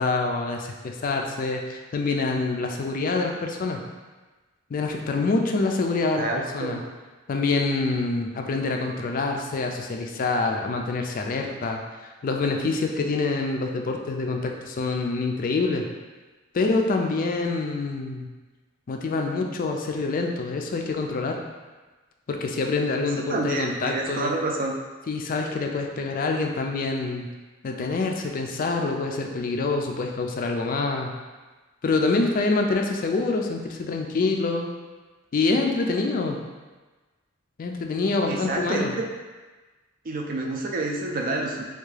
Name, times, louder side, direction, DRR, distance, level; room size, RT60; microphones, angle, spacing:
voice 1, 0.0-3.8 4.7-6.3 6.5-6.8 7.3-15.9 16.5-18.3 18.9-21.4 22.3-24.3 25.1-27.3 27.6-31.1 31.8-34.7 35.3-36.4 37.6-38.9, left 3 dB, 45° left, 2 dB, 0.3 m, -26 dB
voice 2, 6.2-6.8 23.3-24.7 38.3-38.9 40.0-41.6, right 2 dB, 45° right, 0 dB, 0.4 m, -28 dB
3.5 x 2.3 x 3.2 m, 1.3 s
head